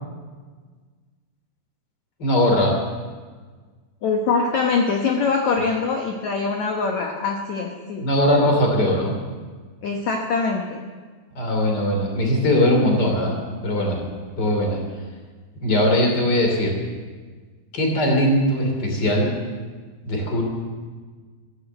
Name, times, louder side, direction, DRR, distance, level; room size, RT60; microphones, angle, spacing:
voice 1, 2.2-2.8 8.0-9.2 11.3-13.4 13.6-14.1 14.4-14.8 15.6-16.7 17.7-19.3 20.0-20.4, left 1 dB, 25° left, 1 dB, 3.0 m, -20 dB
voice 2, 4.0-8.1 9.8-10.8, left 4 dB, 70° left, 2 dB, 1.8 m, -23 dB
14.5 x 11.0 x 8.0 m, 1.5 s
omnidirectional pair, 4.8 m